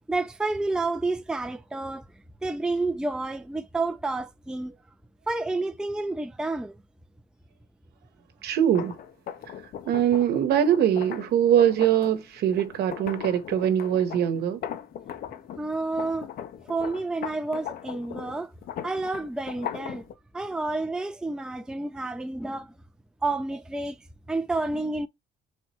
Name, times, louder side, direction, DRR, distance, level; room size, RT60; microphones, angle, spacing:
voice 1, 0.1-2.0 2.4-4.8 5.3-6.8 15.6-16.3 16.6-18.5 18.8-20.0 20.3-22.7 23.2-24.0 24.3-25.1, right 2 dB, 5° right, 0.5 m, -29 dB
voice 2, 8.4-9.0 9.8-14.6, right 10 dB, 70° right, 1.0 m, -22 dB
sound 1, 8.6-15.7 16.0-20.1, left 9 dB, 60° left, 0.7 m, -38 dB
3.9 x 2.9 x 4.2 m
cardioid pair, 110°, 17 cm